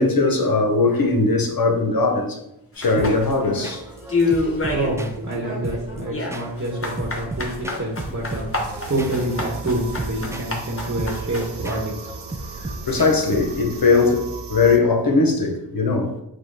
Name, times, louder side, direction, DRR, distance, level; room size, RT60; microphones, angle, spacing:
voice 1, 0.0-2.4 2.8-3.8 4.3-4.5 7.7-7.8 12.6-16.1, left 3 dB, 50° left, 0.9 m, -20 dB
sound 1, 2.8-3.7 4.1-5.0 5.3-11.5, left 3 dB, 30° left, 1.2 m, -27 dB
sound 2, 3.0-13.8, right 2 dB, 5° right, 0.4 m, -36 dB
voice 2, 4.3-12.3 12.6-12.7, right 1 dB, 30° right, 1.2 m, -27 dB
sound 3, 8.5-14.8, right 5 dB, 65° right, 0.7 m, -37 dB
4.9 x 2.3 x 4.6 m
cardioid pair, 45°, 44 cm